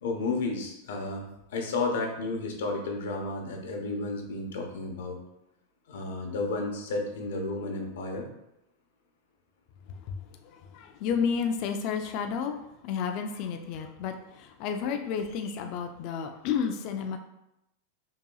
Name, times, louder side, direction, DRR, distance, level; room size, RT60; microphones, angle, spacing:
voice 1, 0.0-5.2 5.9-8.3, left 3 dB, 80° left, 2 dB, 0.9 m, -32 dB
voice 2, 9.9-17.2, left 6 dB, 40° left, 5 dB, 0.4 m, -32 dB
5.4 x 2.9 x 2.3 m, 0.84 s
supercardioid pair, 165°, 0 cm